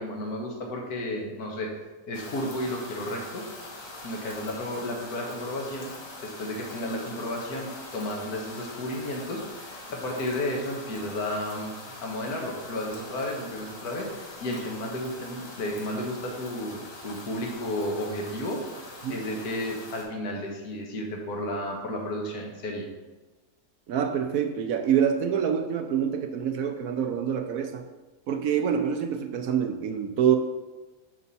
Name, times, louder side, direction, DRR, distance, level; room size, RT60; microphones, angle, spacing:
voice 1, 0.0-1.7 2.1-3.4 4.0-5.9 6.2-11.7 12.0-22.9, left 1 dB, 70° left, 0 dB, 1.7 m, -33 dB
sound 1, 2.1-20.0, left 2 dB, 55° left, 1.8 m, -43 dB
voice 2, 23.9-27.8 28.3-30.4, right 8 dB, 65° right, 6 dB, 1.0 m, -26 dB
6.9 x 6.3 x 4.1 m, 1.2 s
omnidirectional pair, 1.7 m